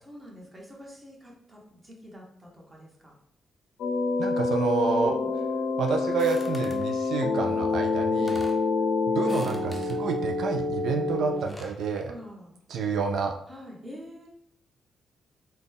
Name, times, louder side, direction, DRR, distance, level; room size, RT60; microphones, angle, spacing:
voice 1, 0.0-3.1 5.1-5.3 12.1-12.6 13.5-14.3, equal, 20° right, -2 dB, 1.2 m, -46 dB
sound 1, 3.8-11.4, left 3 dB, 85° left, 0.5 m, -27 dB
voice 2, 4.2-5.2 5.8-8.4 9.1-12.1 12.7-13.3, right 5 dB, 75° right, 4 dB, 0.3 m, -29 dB
sound 2, 6.2-6.9 7.8-7.9 8.1-8.6 9.2-10.0 11.2-11.8, left 1 dB, 10° left, 0.6 m, -45 dB
3.9 x 2.2 x 3.4 m, 0.70 s
cardioid pair, 85°, 0 cm